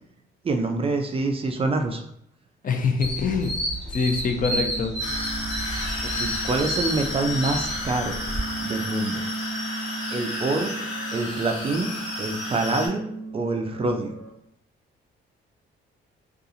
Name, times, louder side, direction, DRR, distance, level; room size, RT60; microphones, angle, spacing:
voice 1, 0.4-2.0 6.0-8.2 8.6-9.2 10.1-10.7 11.1-13.0 13.3-14.1, right 3 dB, 30° right, 4 dB, 0.4 m, -26 dB
voice 2, 2.6-3.5 3.9-4.9, left 5 dB, 45° left, 5 dB, 0.5 m, -24 dB
sound 1, 3.0-8.4, right 1 dB, 5° left, 0.8 m, -31 dB
sound 2, 4.3-14.3, right 3 dB, 90° right, 0.6 m, -37 dB
sound 3, 5.0-12.9, left 2 dB, 75° left, 1.1 m, -32 dB
2.6 x 2.4 x 2.7 m, 0.73 s
cardioid pair, 90°, 20 cm